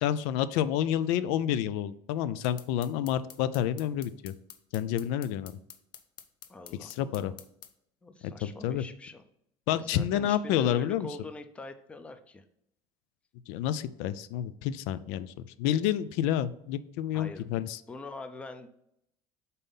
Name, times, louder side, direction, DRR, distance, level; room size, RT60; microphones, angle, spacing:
voice 1, 0.0-4.3 4.7-5.5 6.8-7.3 8.4-8.8 9.7-11.1 13.5-15.3 15.6-17.8, left 11 dB, 90° left, 14 dB, 0.4 m, -29 dB
sound 1, 2.4-7.7, left 9 dB, 50° left, 0.7 m, -49 dB
voice 2, 6.5-7.3 8.0-9.2 9.8-12.5 17.1-17.5 17.9-18.7, left 2 dB, 10° left, 8 dB, 0.4 m, -44 dB
5.4 x 4.1 x 5.5 m, 0.74 s
cardioid pair, 165°, 11 cm